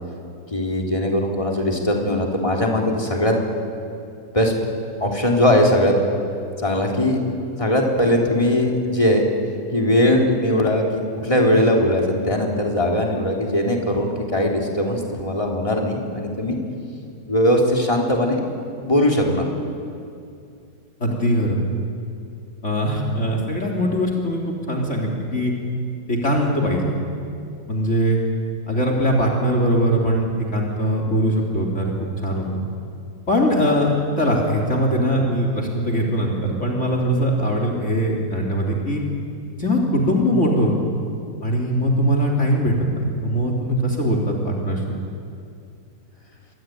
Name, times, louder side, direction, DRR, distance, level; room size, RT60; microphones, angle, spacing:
voice 1, 0.5-3.4 4.3-4.5 5.0-5.9 6.6-7.2 7.6-9.3 9.7-10.8 11.2-16.6 17.2-18.4 18.8-19.4, left 1 dB, 15° left, 0 dB, 3.5 m, -20 dB
voice 2, 21.0-21.6 22.6-25.5 26.1-26.9 27.7-28.2 28.7-31.8 32.2-32.6 33.3-33.9 34.2-39.0 39.6-40.7 41.4-44.8, equal, 40° left, 1 dB, 3.5 m, -21 dB
27.0 x 23.0 x 9.3 m, 2.5 s
omnidirectional pair, 2.0 m